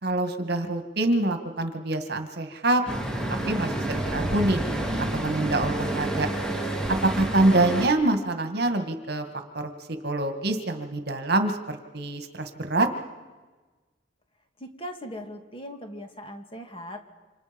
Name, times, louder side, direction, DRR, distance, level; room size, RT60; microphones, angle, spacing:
voice 1, 0.0-2.8 3.5-4.6 5.1-6.3 7.0-9.3 9.5-12.9, right 2 dB, 60° right, 7 dB, 2.0 m, -25 dB
Traffic noise roadway noise, 2.9-7.9, right 1 dB, 5° left, 2.8 m, -29 dB
voice 2, 14.6-17.1, equal, 30° left, 4 dB, 2.3 m, -39 dB
28.0 x 26.5 x 5.3 m, 1.3 s
head